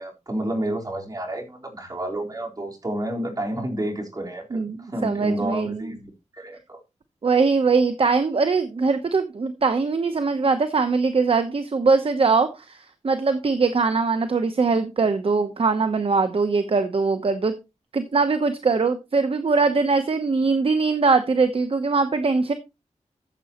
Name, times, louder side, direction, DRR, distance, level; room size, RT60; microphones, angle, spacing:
voice 1, 0.0-6.8, right 1 dB, 30° right, -1 dB, 4.2 m, -30 dB
voice 2, 4.5-5.9 7.2-17.6 17.9-22.5, right 4 dB, 50° right, 8 dB, 0.9 m, -22 dB
14.0 x 7.5 x 3.0 m, 0.26 s
wide cardioid pair, 120°, 12 cm